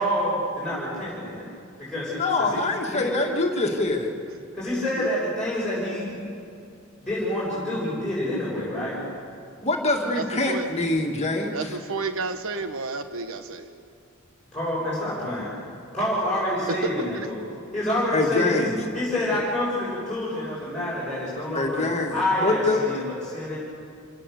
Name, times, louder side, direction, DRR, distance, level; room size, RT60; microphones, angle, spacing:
voice 1, 0.0-1.5 1.8-2.6 4.5-6.2 7.0-9.0 14.5-15.6 15.9-17.4 17.7-18.7 18.9-21.9 22.1-23.6, left 1 dB, 5° left, -10 dB, 7.2 m, -27 dB
voice 2, 2.2-4.1 9.6-11.5 18.1-18.8 21.5-22.8, left 2 dB, 30° left, 1 dB, 2.2 m, -24 dB
voice 3, 10.1-10.7 11.5-13.7 16.7-17.3, right 3 dB, 65° right, 8 dB, 1.2 m, -31 dB
28.0 x 18.0 x 6.9 m, 2.4 s
head